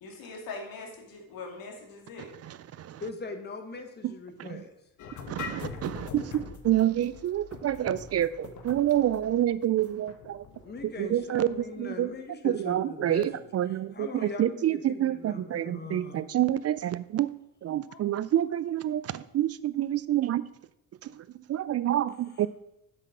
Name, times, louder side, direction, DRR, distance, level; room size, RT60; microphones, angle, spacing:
voice 1, 0.0-2.3 17.9-18.1, left 3 dB, 80° left, 1 dB, 2.6 m, -42 dB
voice 2, 2.4-3.0 4.0-4.1 4.4-4.6 5.3-10.4 10.8-12.1 12.4-17.3 17.6-20.4 21.0-22.5, right 12 dB, 45° right, 17 dB, 0.4 m, -28 dB
voice 3, 3.0-4.7 10.6-13.3 13.9-16.2, left 4 dB, 30° left, 5 dB, 1.3 m, -41 dB
sound 1, 5.0-11.7, left 6 dB, 60° left, 1.2 m, -43 dB
7.9 x 5.9 x 6.1 m, 0.82 s
cardioid pair, 110°, 34 cm